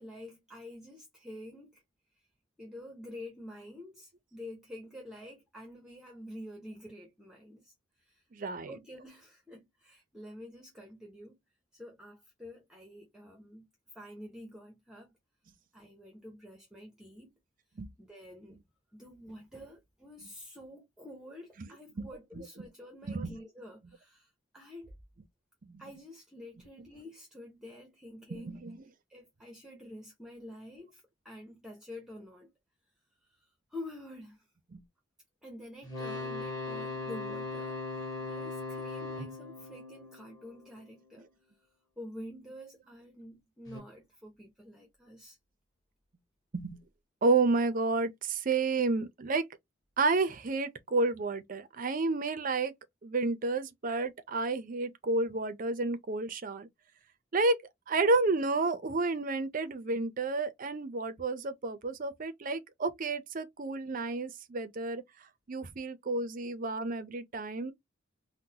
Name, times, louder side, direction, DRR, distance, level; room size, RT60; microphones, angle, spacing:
voice 1, 0.0-1.8 2.6-8.2 8.7-11.4 11.7-15.1 15.7-17.3 18.0-18.6 18.9-24.9 25.8-28.6 29.1-32.5 33.3-34.5 35.4-41.3 42.0-45.4, left 1 dB, 5° right, 0.7 m, -48 dB
voice 2, 8.3-8.8 17.8-17.9 21.6-21.7 22.0-22.7 23.0-23.3 25.6-25.9 26.8-26.9 28.3-28.9 34.7-34.8 46.5-46.8 47.2-49.5 50.0-52.7 53.0-56.7 57.3-57.6 57.9-65.0 65.5-67.7, right 3 dB, 40° right, 0.5 m, -31 dB
sound 1, 35.8-40.9 43.7-43.8, left 3 dB, 20° left, 1.5 m, -39 dB
3.8 x 2.1 x 2.7 m
head